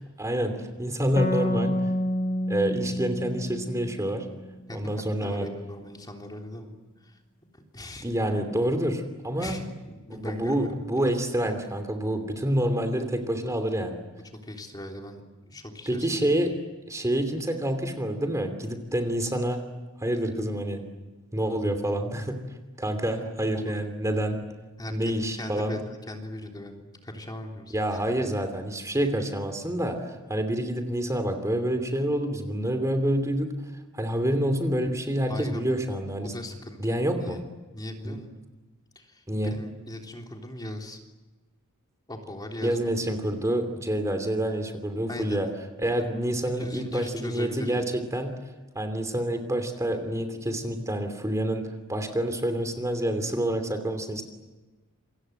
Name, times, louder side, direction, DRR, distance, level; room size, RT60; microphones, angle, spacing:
voice 1, 0.2-1.8 2.5-4.3 4.7-5.5 8.0-9.5 10.1-14.0 15.9-16.5 16.9-19.6 20.0-20.8 21.3-22.4 22.8-24.4 24.9-25.8 27.7-33.5 33.9-36.3 36.8-37.4 38.0-38.2 39.3-39.5 42.6-45.5 45.8-47.8 48.1-48.3 48.7-54.2, right 1 dB, 15° right, 7 dB, 2.9 m, -27 dB
sound 1, 1.2-4.7, left 1 dB, 40° left, 1.1 m, -29 dB
voice 2, 4.7-6.7 7.0-7.2 7.5-8.1 9.4-11.2 14.4-16.3 23.5-23.8 24.8-27.8 35.3-35.7 36.2-37.4 37.7-38.3 39.0-41.0 42.1-42.9 45.1-45.4 46.5-47.9, left 1 dB, 20° left, 2 dB, 3.4 m, -39 dB
28.5 x 26.0 x 8.0 m, 1.2 s
head